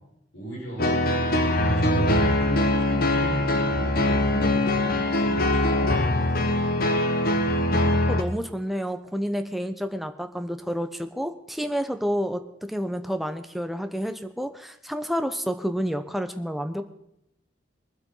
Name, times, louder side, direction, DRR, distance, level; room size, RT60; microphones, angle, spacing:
voice 1, 0.3-1.1 1.7-6.4, right 1 dB, 80° left, -5 dB, 6.5 m, -37 dB
sound 1, 0.8-8.2, left 1 dB, 50° left, 1.4 m, -22 dB
voice 2, 8.1-12.4 12.7-16.8, equal, ahead, 7 dB, 0.9 m, -29 dB
23.0 x 7.7 x 5.7 m, 0.81 s
head